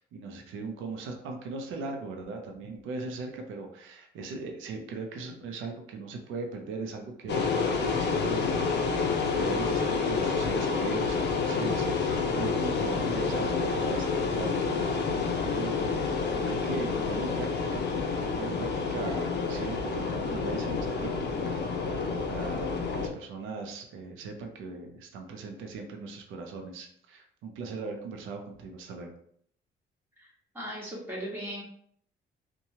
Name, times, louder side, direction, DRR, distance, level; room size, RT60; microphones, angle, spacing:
voice 1, 0.0-15.1 15.4-21.7 22.0-29.1, right 3 dB, 85° right, 3 dB, 0.6 m, -39 dB
sound 1, 7.3-23.1, left 4 dB, 60° left, 0.5 m, -29 dB
voice 2, 30.5-31.6, equal, 10° right, -5 dB, 1.3 m, -37 dB
2.8 x 2.2 x 2.7 m, 0.66 s
cardioid pair, 90°, 20 cm